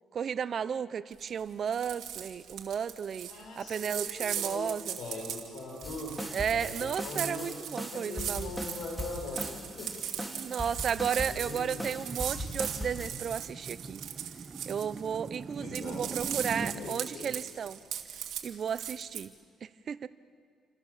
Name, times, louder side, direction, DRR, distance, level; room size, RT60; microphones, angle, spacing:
voice 1, 0.1-3.3 3.6-5.0 6.3-8.5 10.3-14.0 14.7-17.8 18.4-19.3 19.6-20.1, right 7 dB, 55° right, 15 dB, 0.8 m, -34 dB
sound 1, 1.1-1.4 1.7-15.4 15.6-19.2, right 10 dB, 80° right, 2.7 m, -39 dB
voice 2, 3.3-4.7 5.0-6.2 6.5-7.6 7.9-9.9 10.5-10.6 11.3-11.9 15.6-17.3, left 3 dB, 75° left, 2 dB, 7.6 m, -42 dB
sound 2, 5.8-13.1, equal, ahead, 3.8 m, -39 dB
sound 3, 10.8-16.8, right 4 dB, 35° right, 1.7 m, -42 dB
30.0 x 26.0 x 7.6 m, 2.2 s
cardioid pair, 90°, 0 cm